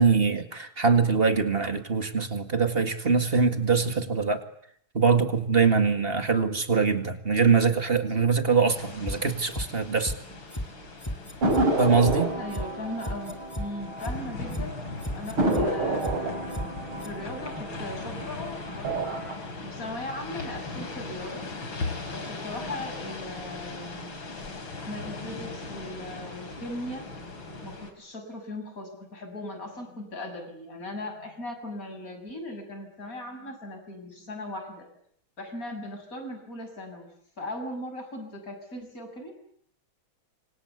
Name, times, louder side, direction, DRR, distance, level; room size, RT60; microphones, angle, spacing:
voice 1, 0.0-4.4 4.9-10.1 11.8-12.3, right 5 dB, 30° right, 8 dB, 2.1 m, -23 dB
sound 1, 8.7-27.9, left 3 dB, 70° left, 4.4 m, -39 dB
sound 2, 9.1-9.7 10.0-10.2 10.5-10.7 11.0-11.7 12.0-12.2 12.5-12.7 13.0-13.7 14.0-14.2 14.5-14.7 15.0-15.7 16.0-16.2 16.5-16.7 17.0-17.1, equal, 10° left, 2.5 m, -33 dB
sound 3, 11.4-14.5 14.8-14.9 15.4-18.3 18.7-19.3, right 2 dB, 80° right, 5.4 m, -29 dB
voice 2, 12.4-19.1 19.6-21.4 22.0-24.2 24.9-27.2 27.6-34.9 35.4-37.1 37.4-39.3, left 1 dB, 40° left, 5 dB, 7.0 m, -38 dB
28.0 x 25.0 x 8.2 m, 0.68 s
omnidirectional pair, 2.3 m